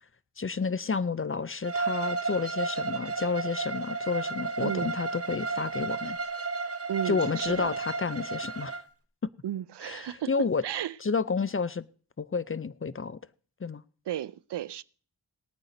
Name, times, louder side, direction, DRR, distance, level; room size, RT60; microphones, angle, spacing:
voice 1, 0.4-6.2 7.1-8.8 9.8-10.6 11.0-11.9 12.2-13.2 13.6-13.8, left 5 dB, 30° left, 0.5 m, -30 dB
Bowed string instrument, 1.6-8.8, right 4 dB, 35° right, 1.1 m, -33 dB
voice 2, 4.6-4.9 6.9-7.8 9.4-11.0 14.1-14.8, right 11 dB, 75° right, 0.5 m, -34 dB
18.5 x 9.1 x 4.0 m
cardioid pair, 45°, 42 cm